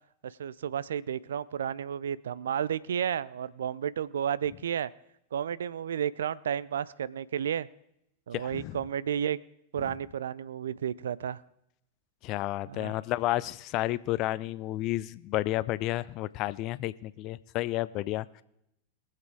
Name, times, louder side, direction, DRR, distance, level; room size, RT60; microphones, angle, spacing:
voice 1, 0.2-4.9 5.3-7.7 8.3-9.4 9.7-11.4 12.7-12.9, right 9 dB, 65° right, 20 dB, 0.4 m, -32 dB
voice 2, 8.3-8.8 12.2-18.4, left 16 dB, 40° left, 18 dB, 0.4 m, -31 dB
22.0 x 7.7 x 4.6 m, 0.80 s
figure-of-eight pair, 90°, 0 cm